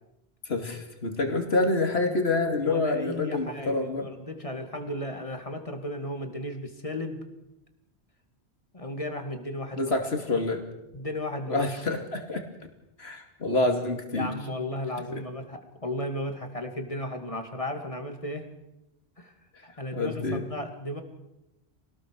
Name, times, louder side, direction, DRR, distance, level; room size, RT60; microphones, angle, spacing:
voice 1, 0.4-4.1 9.8-10.7 11.5-12.4 13.0-14.3 15.1-15.2 19.9-20.4, left 2 dB, 70° left, 4 dB, 2.8 m, -27 dB
voice 2, 2.6-7.2 8.7-9.9 10.9-11.7 14.1-18.5 19.2-19.3 19.6-21.0, left 1 dB, 30° left, 5 dB, 2.5 m, -35 dB
25.0 x 19.0 x 6.4 m, 0.92 s
omnidirectional pair, 1.1 m